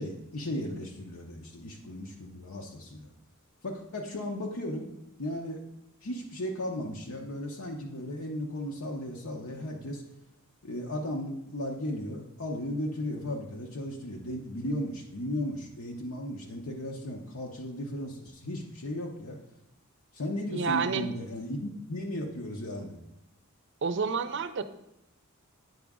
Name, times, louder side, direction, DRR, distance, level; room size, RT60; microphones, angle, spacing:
voice 1, 0.0-3.1 3.6-4.9 5.2-5.6 6.0-10.0 10.6-19.4 20.1-23.0, left 1 dB, 75° left, 0 dB, 0.8 m, -35 dB
voice 2, 20.5-21.1 23.8-24.6, right 5 dB, 55° right, 11 dB, 0.5 m, -29 dB
9.3 x 5.0 x 3.6 m, 0.86 s
head